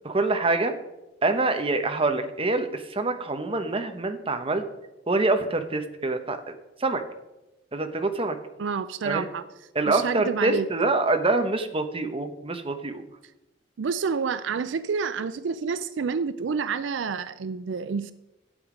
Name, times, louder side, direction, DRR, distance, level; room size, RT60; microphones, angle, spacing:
voice 1, 0.0-0.7 1.2-4.6 5.1-6.4 6.8-7.0 7.7-8.4 9.0-9.3 9.7-13.0, right 3 dB, 30° right, 7 dB, 0.9 m, -25 dB
voice 2, 8.6-9.4 9.9-10.7 13.8-18.1, right 5 dB, 75° right, 13 dB, 0.4 m, -28 dB
11.5 x 7.8 x 5.1 m, 0.96 s
head